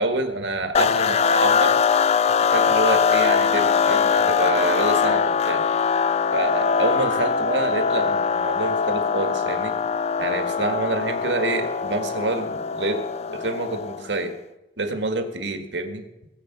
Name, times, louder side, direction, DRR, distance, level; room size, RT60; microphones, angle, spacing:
voice 1, 0.0-1.8 2.4-5.6 6.3-9.7 10.2-14.4 14.8-16.0, right 2 dB, 85° right, 6 dB, 1.8 m, -27 dB
sound 1, 0.7-14.1, left 6 dB, 35° left, 0.3 m, -22 dB
19.0 x 7.8 x 6.0 m, 1.0 s
head